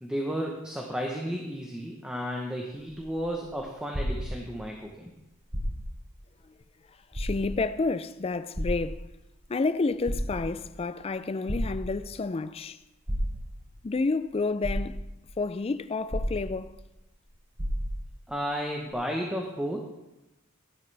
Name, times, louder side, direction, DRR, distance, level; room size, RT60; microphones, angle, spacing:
voice 1, 0.0-5.1 18.3-19.8, equal, 5° right, 0.9 m, -33 dB
sound 1, 2.9-4.8 5.4-6.1 6.5-6.6 7.1-7.8 8.5-9.4 9.9-10.7 11.5-12.2 13.1-13.8 14.3-14.4 14.6-15.3 16.1-16.9 17.2-17.3 17.6-18.2 18.9-19.0, equal, 30° right, 3.1 m, -33 dB
voice 2, 7.1-9.1 9.5-12.8 13.8-15.0 15.4-16.7, left 3 dB, 25° left, 0.3 m, -30 dB
13.5 x 11.0 x 3.4 m
head